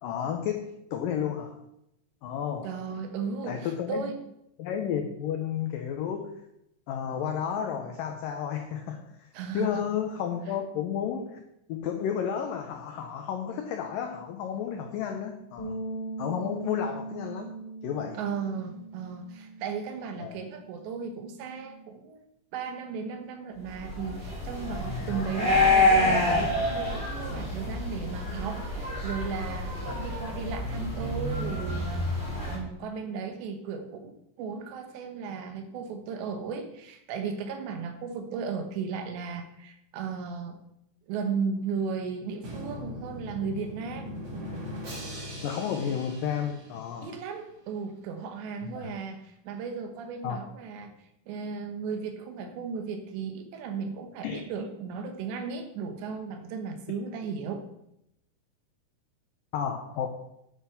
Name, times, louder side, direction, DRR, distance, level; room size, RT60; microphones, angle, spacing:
voice 1, 0.0-1.6 2.2-2.7 3.4-4.1 4.6-6.4 6.9-9.3 9.5-11.4 11.7-15.8 16.2-17.5 17.8-18.2 20.2-20.4 24.9-25.3 29.9-30.0 44.6-44.7 45.4-47.2 48.6-48.9 50.2-50.4 54.2-54.4 59.5-60.1, left 8 dB, 85° left, 5 dB, 1.9 m, -32 dB
voice 2, 2.6-4.2 9.3-9.8 18.1-22.2 22.5-40.6 41.1-44.2 47.0-50.9 51.3-57.6, right 5 dB, 75° right, 6 dB, 3.4 m, -35 dB
sound 1, 15.6-21.8, right 2 dB, 35° left, 3.6 m, -41 dB
sound 2, 23.8-32.6, left 2 dB, 10° right, 3.8 m, -27 dB
Drum, 42.4-47.3, equal, 40° right, 3.4 m, -40 dB
9.9 x 8.2 x 5.9 m, 0.80 s
omnidirectional pair, 5.1 m